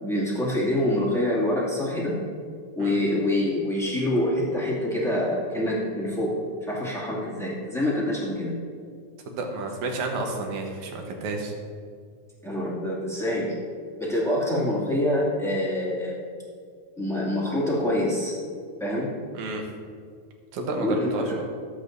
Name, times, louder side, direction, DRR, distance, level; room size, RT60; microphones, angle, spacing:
voice 1, 0.0-2.2 2.7-8.6 12.4-13.5 14.0-16.2 17.0-18.3 18.8-19.1 20.7-21.4, left 1 dB, ahead, -7 dB, 1.4 m, -26 dB
voice 2, 9.3-11.5 19.3-19.6 20.5-21.4, right 2 dB, 70° right, 2 dB, 2.4 m, -31 dB
14.5 x 8.4 x 2.6 m, 2.1 s
omnidirectional pair, 3.8 m